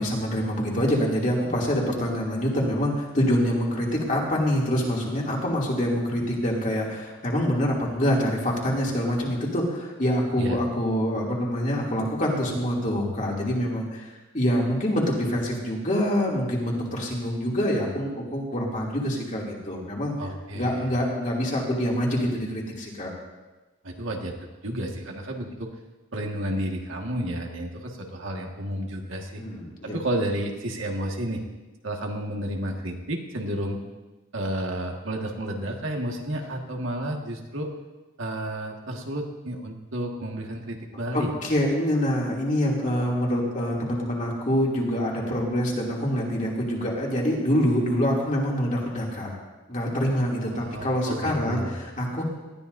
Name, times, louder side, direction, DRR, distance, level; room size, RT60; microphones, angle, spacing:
voice 1, 0.0-14.1 14.3-20.1 20.5-23.1 29.4-30.0 41.1-49.3 49.7-52.2, equal, 40° left, -3 dB, 2.8 m, -25 dB
voice 2, 20.2-20.9 23.8-24.4 24.6-25.7 26.1-29.4 29.8-31.4 31.8-33.8 34.3-37.7 38.2-41.3 50.5-51.8, right 1 dB, 80° right, 1 dB, 1.8 m, -31 dB
19.0 x 13.5 x 2.7 m, 1.2 s
head